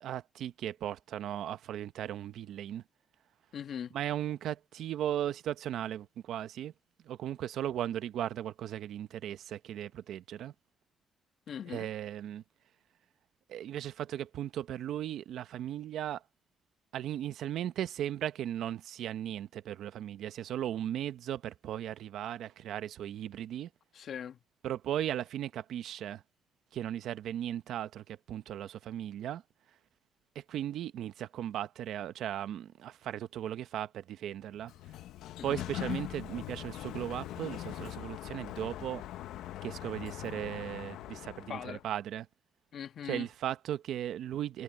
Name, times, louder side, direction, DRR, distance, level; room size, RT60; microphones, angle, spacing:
voice 1, 0.0-2.8 3.9-6.7 7.0-10.5 11.7-12.4 13.5-16.2 16.9-23.7 24.6-26.2 26.7-29.4 30.3-34.7 35.4-39.0 39.6-42.3 43.0-44.6, right 11 dB, 75° right, 1.0 m, -37 dB
voice 2, 3.5-4.0 11.5-11.9 23.9-24.4 35.4-35.6 41.5-41.8 42.7-43.3, left 8 dB, 65° left, 1.4 m, -40 dB
Sliding door, 34.5-41.9, left 13 dB, 85° left, 0.9 m, -42 dB
cardioid pair, 90°, 0 cm